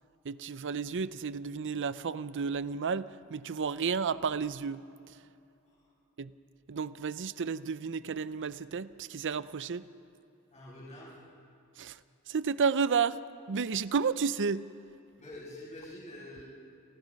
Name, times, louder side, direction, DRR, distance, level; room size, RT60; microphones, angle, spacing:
voice 1, 0.2-4.8 6.2-6.3 6.7-9.8 11.8-12.0 12.3-13.2 13.5-14.6, right 5 dB, 55° right, 16 dB, 0.6 m, -31 dB
voice 2, 10.5-11.2 15.2-16.4, left 1 dB, 30° left, -5 dB, 7.0 m, -46 dB
29.0 x 18.5 x 5.3 m, 2.7 s
head